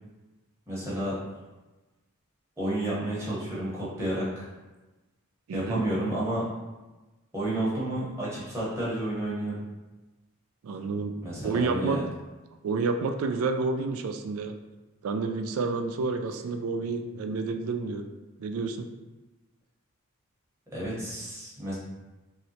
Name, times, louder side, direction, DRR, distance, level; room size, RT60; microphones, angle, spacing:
voice 1, 0.7-1.1 2.6-4.5 5.5-6.5 7.3-9.6 11.2-12.1 20.7-21.7, right 1 dB, 15° right, -8 dB, 0.9 m, -31 dB
voice 2, 5.5-5.8 10.6-11.1 11.4-12.0 12.6-14.5 15.0-18.1 18.4-18.9, right 4 dB, 75° right, 6 dB, 0.3 m, -29 dB
3.1 x 2.8 x 2.7 m, 1.1 s
head